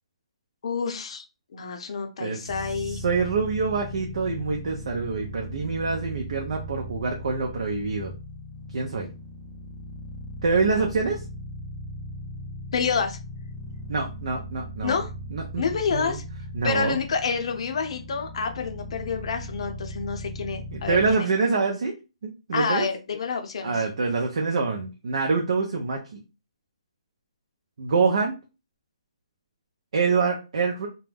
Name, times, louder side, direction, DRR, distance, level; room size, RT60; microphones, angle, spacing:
voice 1, 0.6-1.2 1.5-3.0 12.7-13.2 14.8-15.1 15.6-16.2 16.6-21.3 22.5-23.8, left 5 dB, 55° left, 5 dB, 0.6 m, -28 dB
voice 2, 2.2-2.5 2.8-8.1 8.7-9.1 10.4-11.2 13.9-15.0 15.3-15.6 15.9-16.2 16.5-17.0 20.7-21.9 22.2-22.9 23.6-26.2 27.8-28.3 29.9-30.9, right 4 dB, 65° right, 1 dB, 0.6 m, -25 dB
sound 1, 2.5-21.2, equal, ahead, 0.5 m, -38 dB
2.2 x 2.1 x 3.3 m, 0.30 s
hypercardioid pair, 160°, 4 cm